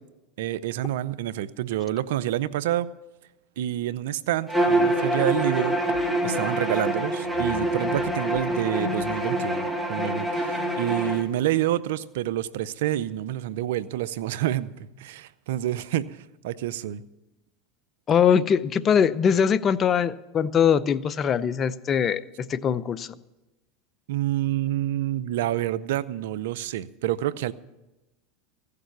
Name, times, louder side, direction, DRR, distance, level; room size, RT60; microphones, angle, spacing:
voice 1, 0.4-2.9 3.6-17.0 24.1-27.5, right 13 dB, 75° right, 17 dB, 0.6 m, -28 dB
Bowed string instrument, 4.5-11.2, right 1 dB, ahead, 1.8 m, -25 dB
voice 2, 18.1-23.1, left 7 dB, 35° left, 17 dB, 0.6 m, -22 dB
15.5 x 6.8 x 9.5 m, 1.0 s
hypercardioid pair, 100°, 0 cm